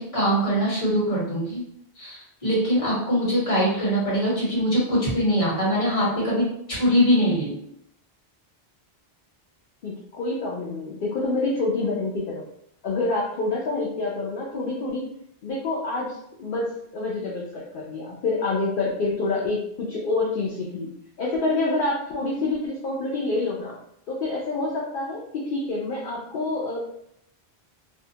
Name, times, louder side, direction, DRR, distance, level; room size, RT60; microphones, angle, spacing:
voice 1, 0.0-1.6 2.0-7.5, equal, 35° left, -7 dB, 1.2 m, -22 dB
voice 2, 9.8-12.4 12.8-15.0 15.4-20.9 21.2-23.7 24.1-26.8, left 2 dB, 60° left, -4 dB, 0.7 m, -27 dB
2.6 x 2.2 x 2.7 m, 0.74 s
omnidirectional pair, 1.0 m